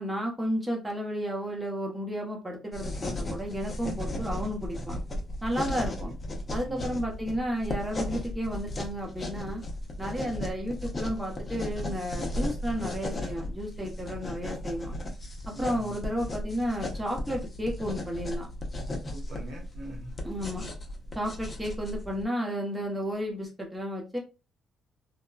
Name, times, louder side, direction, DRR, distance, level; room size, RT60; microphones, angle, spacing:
voice 1, 0.0-4.9 5.4-6.1 6.5-9.6 10.0-14.9 15.5-18.5 20.2-20.7 21.1-24.2, equal, 10° right, 0 dB, 0.9 m, -32 dB
sound 1, 2.7-22.2, left 1 dB, 30° left, 0.7 m, -36 dB
voice 2, 5.7-6.1 6.6-7.0 10.2-10.4 15.5-16.0 19.1-20.1, right 1 dB, 80° right, -1 dB, 1.0 m, -43 dB
2.8 x 2.2 x 2.3 m, 0.30 s
cardioid pair, 90°, 0 cm